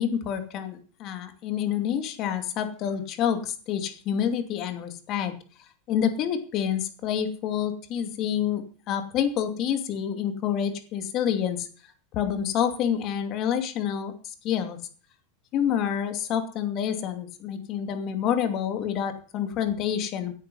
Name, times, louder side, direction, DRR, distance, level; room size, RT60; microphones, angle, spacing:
voice 1, 0.0-5.3 5.9-11.7 12.1-14.8 15.5-20.3, left 9 dB, 40° left, 7 dB, 2.5 m, -28 dB
17.5 x 10.5 x 5.5 m, 0.42 s
supercardioid pair, 150°, 0 cm